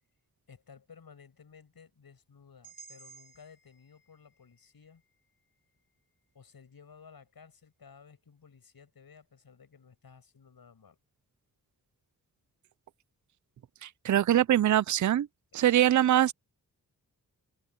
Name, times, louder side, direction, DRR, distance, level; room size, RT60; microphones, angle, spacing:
voice 1, 0.5-5.0 6.3-11.0 15.6-15.8, left 6 dB, 75° left, 7.3 m, -55 dB
sound 1, 2.6-6.7, right 5 dB, 20° right, 5.1 m, -57 dB
voice 2, 13.8-15.3 15.5-16.3, right 12 dB, 55° right, 0.5 m, -23 dB
cardioid pair, 65°, 36 cm